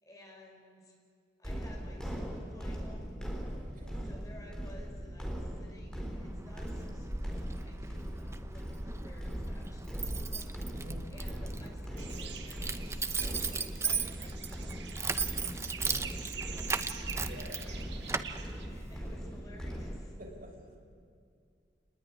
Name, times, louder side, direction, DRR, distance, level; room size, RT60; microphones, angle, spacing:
voice 1, 0.0-0.9 1.4-3.0 4.0-14.7 15.3-17.2 17.6-18.2 18.6-20.2, left 1 dB, 20° left, 0 dB, 5.6 m, -55 dB
sound 1, 1.4-20.0, equal, 5° left, 4.3 m, -40 dB
voice 2, 3.5-4.1 10.7-11.1 17.2-17.7 20.2-20.6, right 1 dB, 50° right, 1 dB, 6.2 m, -49 dB
Keys jangling, 6.1-19.2, right 4 dB, 15° right, 0.9 m, -38 dB
sound 2, 12.0-18.7, right 7 dB, 65° right, 2.0 m, -46 dB
28.5 x 20.5 x 9.9 m, 2.3 s
head